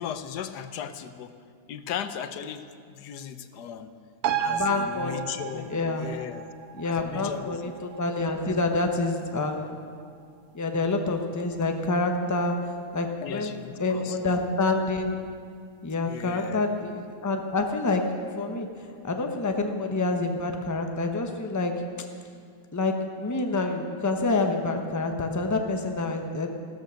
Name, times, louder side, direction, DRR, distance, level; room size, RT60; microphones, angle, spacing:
voice 1, 0.0-1.3 1.7-3.9 4.4-5.7 6.0-6.5 6.8-7.7 8.4-8.5 8.9-9.1 13.2-14.4 16.1-16.6, left 9 dB, 80° left, 10 dB, 1.3 m, -37 dB
sound 1, 4.2-11.2 11.5-11.6, right 8 dB, 70° right, 1.2 m, -35 dB
voice 2, 4.5-5.2 5.5-6.1 6.8-9.8 10.5-12.6 12.9-13.5 13.8-15.2 15.8-18.0 18.4-18.7 19.0-21.7 22.7-26.5, left 3 dB, 15° left, 4 dB, 0.9 m, -27 dB
15.0 x 13.0 x 6.3 m, 2.2 s
omnidirectional pair, 1.7 m